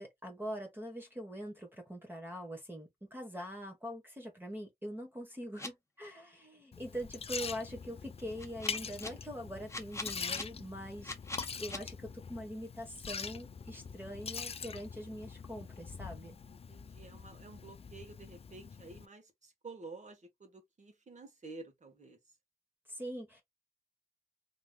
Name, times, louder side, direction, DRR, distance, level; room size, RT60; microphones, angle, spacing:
voice 1, 0.0-11.1 11.6-16.4 22.9-23.4, equal, 15° right, 1.2 m, -43 dB
sound 1, 5.6-5.7 8.4-9.1 9.7-10.4 11.0-11.8, left 2 dB, 15° left, 0.9 m, -41 dB
Liquid, 6.7-19.1, left 6 dB, 40° left, 0.4 m, -44 dB
voice 2, 16.5-22.2, right 3 dB, 50° right, 1.3 m, -51 dB
3.5 x 3.0 x 2.3 m
cardioid pair, 80°, 16 cm